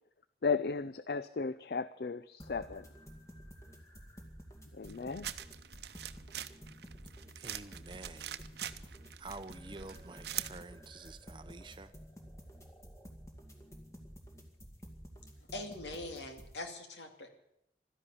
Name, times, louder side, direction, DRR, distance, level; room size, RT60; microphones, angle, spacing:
voice 1, 0.4-2.9 4.7-5.3, left 4 dB, 65° left, 0.5 m, -35 dB
sound 1, 2.4-16.5, equal, 15° left, 2.2 m, -52 dB
sound 2, 4.9-10.6, right 11 dB, 70° right, 0.8 m, -44 dB
voice 2, 7.4-8.5 8.8-8.9 9.2-11.9, right 3 dB, 25° right, 0.7 m, -49 dB
voice 3, 15.4-17.3, left 2 dB, 85° left, 2.6 m, -43 dB
13.0 x 10.5 x 9.9 m
head